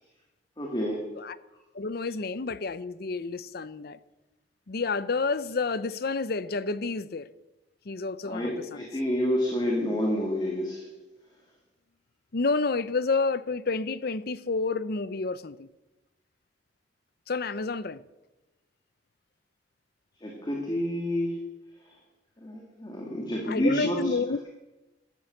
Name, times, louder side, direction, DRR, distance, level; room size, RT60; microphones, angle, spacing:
voice 1, 0.6-1.0 8.2-10.9 20.2-21.4 22.4-24.0, equal, 25° left, 2.5 m, -29 dB
voice 2, 1.7-4.0 4.7-7.3 7.9-8.9 12.3-15.7 17.3-18.0 23.5-24.5, left 4 dB, 60° left, 0.7 m, -29 dB
14.0 x 13.0 x 6.6 m
head